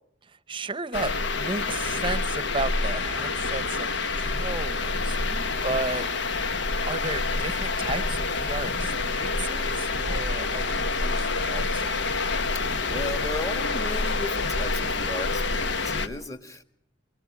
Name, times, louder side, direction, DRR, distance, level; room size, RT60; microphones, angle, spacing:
voice 1, 0.2-5.4 5.6-6.1 6.9-12.0, right 3 dB, 25° right, 15 dB, 0.8 m, -34 dB
sound 1, 0.9-16.1, left 3 dB, 75° left, 1.2 m, -27 dB
sound 2, 4.0-15.7, right 1 dB, 55° left, 4.8 m, -53 dB
voice 2, 5.0-5.5 12.5-16.6, left 1 dB, 20° left, 8 dB, 1.7 m, -36 dB
24.5 x 23.5 x 6.0 m, 0.74 s
head